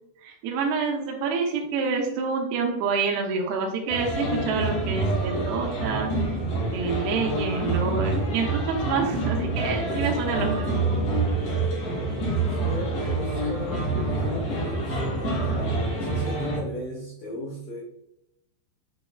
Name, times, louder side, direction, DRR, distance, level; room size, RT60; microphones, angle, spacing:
voice 1, 0.2-6.4 6.7-10.9, right 5 dB, 85° right, 1 dB, 2.3 m, -27 dB
sound 1, 3.9-16.6, right 2 dB, 70° left, 1.6 m, -27 dB
voice 2, 9.8-10.9 11.5-17.8, equal, 90° left, -3 dB, 1.8 m, -37 dB
6.9 x 3.1 x 2.3 m, 0.82 s
omnidirectional pair, 5.1 m